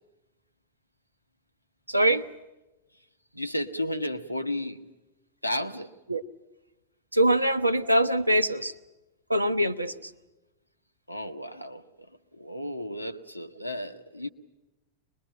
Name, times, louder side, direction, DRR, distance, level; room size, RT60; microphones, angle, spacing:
voice 1, 1.9-2.3 6.1-6.2 7.1-8.7 9.3-10.1, right 1 dB, 85° right, 0.8 m, -23 dB
voice 2, 3.3-4.9 5.4-5.9 11.1-11.8 12.3-14.3, left 1 dB, 90° left, 1.0 m, -33 dB
23.5 x 21.5 x 8.9 m
figure-of-eight pair, 90°, 0 cm